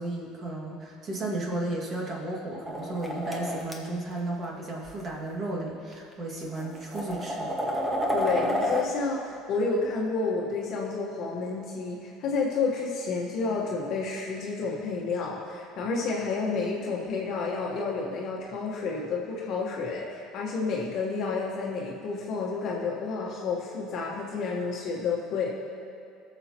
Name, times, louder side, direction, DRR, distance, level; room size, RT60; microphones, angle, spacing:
voice 1, 0.0-7.5, right 2 dB, 30° right, -2 dB, 2.0 m, -34 dB
sound 1, 2.7-3.7 4.8-5.0 5.9-6.0 6.6-8.8, equal, 10° right, 1.1 m, -29 dB
voice 2, 8.1-25.5, left 4 dB, 50° left, -2 dB, 1.2 m, -30 dB
21.0 x 7.1 x 3.0 m, 2.4 s
cardioid pair, 145°, 0 cm